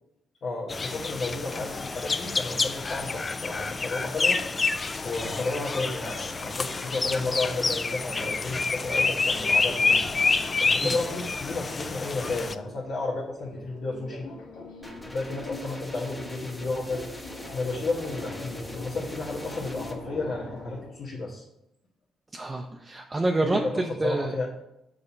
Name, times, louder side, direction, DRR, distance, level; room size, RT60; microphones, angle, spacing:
voice 1, 0.4-4.4 5.0-10.0 10.6-14.2 15.1-17.1 17.5-21.4 23.4-24.5, left 3 dB, 60° left, -5 dB, 1.3 m, -32 dB
sound 1, 0.7-12.5, left 4 dB, 30° left, 0.4 m, -28 dB
sound 2, 9.5-21.0, left 2 dB, 90° left, 1.5 m, -43 dB
sound 3, 14.8-20.0, left 1 dB, 10° left, 1.1 m, -44 dB
voice 2, 22.3-24.3, right 2 dB, 20° right, 2 dB, 0.6 m, -27 dB
6.6 x 4.3 x 4.4 m, 0.85 s
cardioid pair, 90°, 0 cm